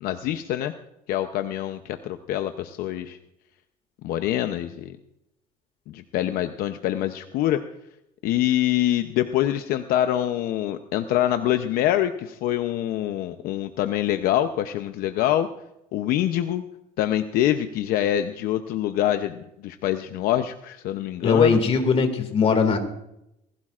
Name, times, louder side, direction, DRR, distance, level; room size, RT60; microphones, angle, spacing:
voice 1, 0.0-0.7 1.1-3.2 4.0-5.0 5.9-7.6 8.2-15.5 15.9-16.6 17.0-21.6, left 12 dB, 70° left, 8 dB, 0.7 m, -25 dB
voice 2, 21.2-22.8, left 5 dB, 40° left, 7 dB, 2.2 m, -20 dB
20.0 x 16.0 x 2.5 m, 0.83 s
cardioid pair, 125°, 16 cm